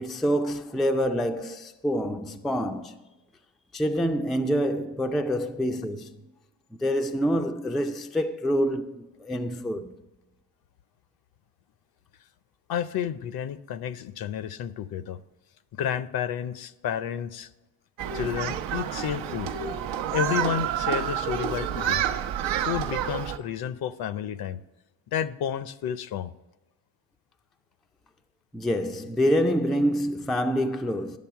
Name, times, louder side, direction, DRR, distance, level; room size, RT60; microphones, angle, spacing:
voice 1, 0.0-3.0 3.7-6.3 6.7-9.9 28.5-31.2, equal, ahead, 0.3 m, -26 dB
voice 2, 12.7-15.2 15.8-17.5 18.1-19.5 20.1-22.0 22.6-24.6 25.1-26.3, left 9 dB, 55° left, 0.6 m, -31 dB
Human group actions, 18.0-23.4, right 10 dB, 85° right, 0.8 m, -29 dB
10.5 x 6.7 x 4.6 m
cardioid pair, 110°, 44 cm